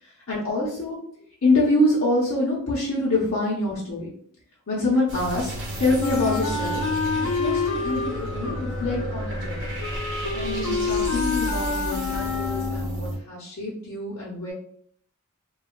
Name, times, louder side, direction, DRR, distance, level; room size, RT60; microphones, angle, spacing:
voice 1, 0.3-1.1 1.4-4.1 4.7-6.8 7.2-9.7 10.3-14.5, left 2 dB, 70° left, -7 dB, 0.8 m, -25 dB
sound 1, 5.1-13.2, right 1 dB, 55° right, 0.8 m, -32 dB
Wind instrument woodwind instrument, 6.0-13.0, left 4 dB, 85° left, 0.4 m, -28 dB
3.3 x 2.3 x 2.2 m, 0.62 s
head